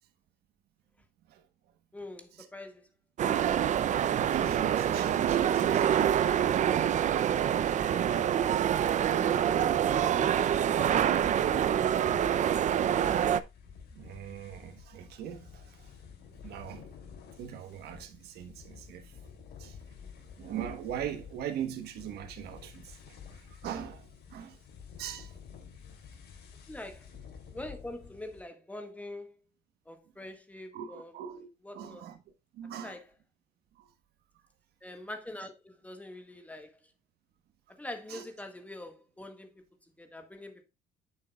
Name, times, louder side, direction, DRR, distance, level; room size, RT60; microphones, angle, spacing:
voice 1, 1.9-2.9 9.8-9.9 11.4-13.0 26.7-27.1 27.5-29.4 29.8-31.2 31.6-32.1 32.8-33.1 34.8-36.8 37.8-39.5 40.0-40.6, left 1 dB, 10° left, 1.6 m, -44 dB
sound 1, 3.2-13.4, right 9 dB, 45° right, 0.5 m, -26 dB
voice 2, 4.2-6.9 7.2-7.3 10.8-10.9 13.9-15.9 16.4-16.9 17.4-19.1 19.6-19.8 20.4-24.6 25.0-25.3 30.7-31.5 31.7-32.2 32.5-33.0 33.8-33.9 38.1-38.3, right 10 dB, 70° right, 1.2 m, -40 dB
sound 2, 9.3-28.4, left 6 dB, 75° left, 2.8 m, -50 dB
8.9 x 6.8 x 2.3 m
cardioid pair, 110°, 17 cm